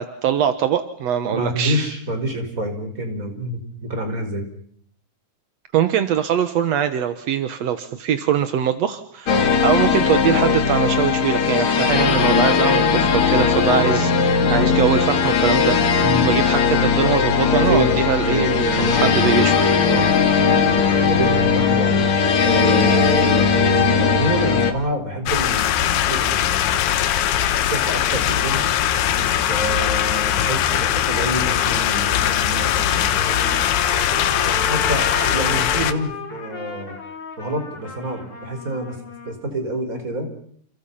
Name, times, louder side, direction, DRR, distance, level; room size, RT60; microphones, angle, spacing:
voice 1, 0.0-1.9 5.7-19.7, right 9 dB, 65° right, 10 dB, 1.7 m, -22 dB
voice 2, 1.3-4.4 9.3-9.9 16.0-16.3 17.7-18.0 18.3-19.3 19.8-26.8 27.7-37.0 37.4-39.0 39.2-40.3, right 1 dB, 20° right, 6 dB, 4.9 m, -27 dB
sound 1, 9.3-24.7, left 6 dB, 50° left, 3.0 m, -18 dB
sound 2, 25.3-35.9, left 11 dB, 80° left, 3.2 m, -21 dB
Trumpet, 32.0-39.3, left 3 dB, 35° left, 4.2 m, -32 dB
29.5 x 28.5 x 5.7 m, 0.64 s
omnidirectional pair, 4.6 m